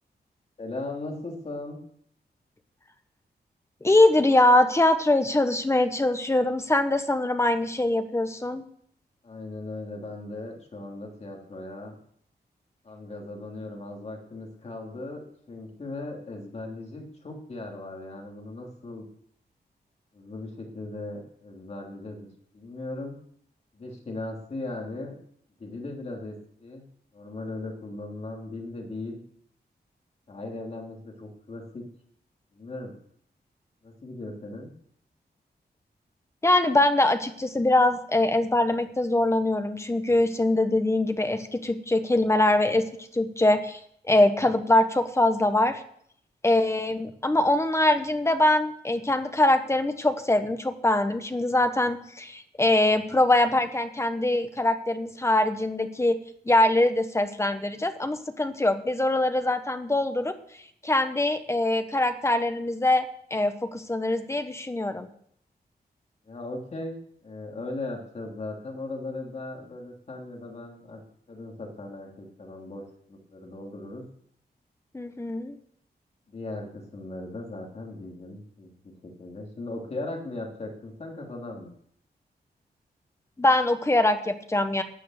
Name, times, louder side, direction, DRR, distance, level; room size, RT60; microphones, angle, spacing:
voice 1, 0.6-1.8 9.2-11.9 12.8-19.1 20.1-22.3 22.5-23.1 23.7-25.1 25.6-26.8 27.1-29.2 30.3-31.8 32.5-32.9 33.8-34.7 66.2-67.0 67.2-71.0 71.3-72.8 73.1-74.0 76.3-81.7, left 2 dB, 40° left, 0 dB, 3.1 m, -38 dB
voice 2, 3.8-8.6 36.4-42.9 43.1-43.8 44.1-45.8 46.4-56.2 56.5-60.3 60.8-63.0 63.3-65.1 74.9-75.5 83.4-84.8, left 1 dB, 15° left, 8 dB, 1.1 m, -23 dB
11.5 x 9.5 x 7.8 m, 0.66 s
wide cardioid pair, 165°, 17 cm